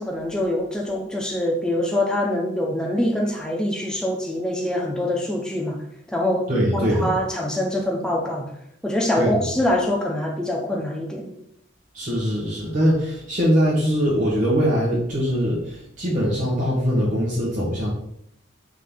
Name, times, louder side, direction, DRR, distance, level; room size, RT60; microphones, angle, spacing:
voice 1, 0.0-5.8 6.1-8.5 8.8-11.3, left 1 dB, 5° left, 0 dB, 0.7 m, -24 dB
voice 2, 6.5-7.1 9.2-9.4 11.9-17.9, equal, 40° right, -6 dB, 1.5 m, -22 dB
5.3 x 3.7 x 5.6 m, 0.73 s
head